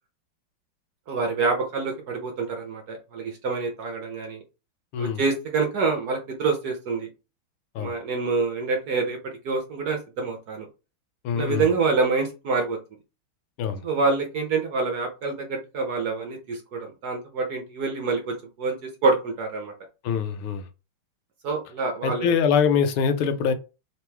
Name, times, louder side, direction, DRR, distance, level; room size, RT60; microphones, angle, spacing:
voice 1, 1.1-4.4 5.0-7.1 7.8-10.7 11.3-12.8 13.8-19.7 21.4-22.3, right 4 dB, 60° right, 1.1 m, -26 dB
voice 2, 11.2-11.7 13.6-13.8 20.0-20.6 22.0-23.5, left 7 dB, 90° left, 1.6 m, -23 dB
3.8 x 3.0 x 3.3 m
omnidirectional pair, 2.3 m